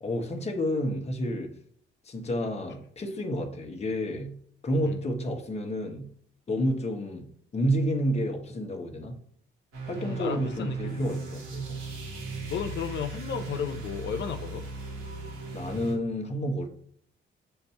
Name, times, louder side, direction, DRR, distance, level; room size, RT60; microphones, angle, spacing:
voice 1, 0.0-1.6 2.0-6.1 6.5-9.2 9.9-11.8 15.5-16.7, equal, 35° left, 1.1 m, -30 dB
sound 1, 9.7-15.9, right 4 dB, 85° right, 2.0 m, -37 dB
voice 2, 9.9-11.1 12.5-14.6, left 7 dB, 65° left, 0.6 m, -34 dB
6.8 x 2.6 x 5.6 m
cardioid pair, 90°, 20 cm